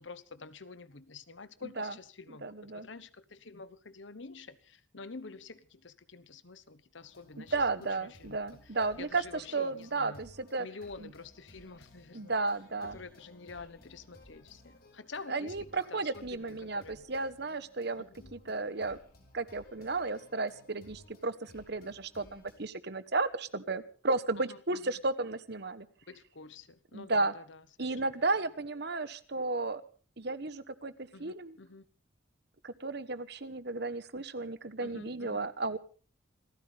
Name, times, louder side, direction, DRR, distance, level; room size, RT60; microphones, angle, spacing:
voice 1, 0.0-8.6 9.0-10.2 10.6-12.3 12.9-17.0 18.0-18.5 24.5-24.9 26.1-28.2 31.1-31.8 34.8-35.5, left 4 dB, 70° left, 1.1 m, -48 dB
voice 2, 2.3-2.9 7.4-10.7 11.0-11.1 12.1-13.0 15.3-18.0 18.3-19.0 19.3-25.9 26.9-27.3 27.8-29.8 30.2-31.6 32.6-35.8, right 3 dB, 55° right, 1.2 m, -33 dB
sound 1, 7.0-22.6, left 1 dB, 50° left, 5.3 m, -58 dB
27.5 x 14.5 x 3.5 m
head